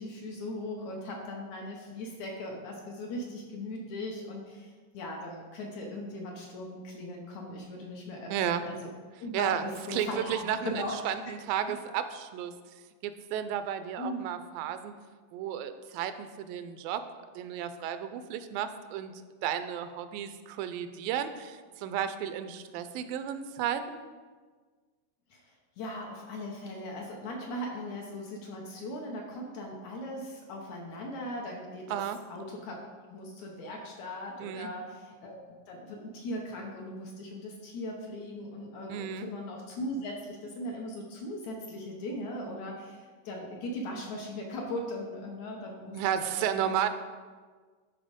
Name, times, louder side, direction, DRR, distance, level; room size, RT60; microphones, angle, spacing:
voice 1, 0.0-8.9 9.2-11.0 11.3-11.4 11.6-11.7 14.0-14.3 25.3-25.4 25.8-32.0 32.3-32.8 33.1-46.5, left 1 dB, 70° left, 0 dB, 1.9 m, -39 dB
voice 2, 8.3-8.7 9.3-9.6 9.9-12.5 13.0-14.9 15.3-17.0 17.4-19.1 19.4-24.0 31.9-32.2 34.4-34.7 38.9-39.3 45.9-46.9, right 9 dB, 85° right, 10 dB, 2.2 m, -33 dB
11.5 x 4.3 x 5.1 m, 1.5 s
omnidirectional pair, 4.0 m